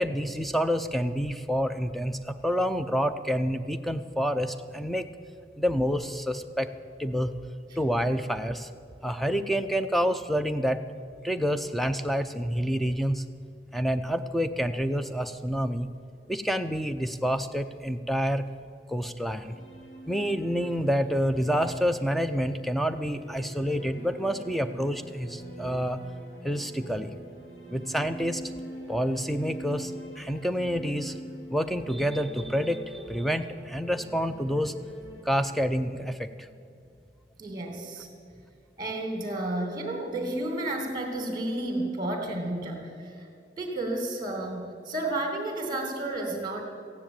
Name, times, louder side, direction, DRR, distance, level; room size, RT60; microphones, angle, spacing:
voice 1, 0.0-5.1 5.6-6.7 7.0-7.3 7.8-8.7 9.0-10.8 11.2-13.2 13.7-15.9 16.3-18.4 18.9-19.5 20.1-26.0 26.4-27.1 27.7-28.4 28.9-31.2 31.5-34.7 35.3-36.5, equal, ahead, 9 dB, 0.5 m, -28 dB
sound 1, 19.1-37.0, right 1 dB, 75° left, 3.0 m, -44 dB
voice 2, 37.4-38.1 38.8-43.3 43.6-46.6, right 2 dB, 20° right, 3 dB, 2.6 m, -32 dB
15.0 x 10.0 x 8.8 m, 2.4 s
head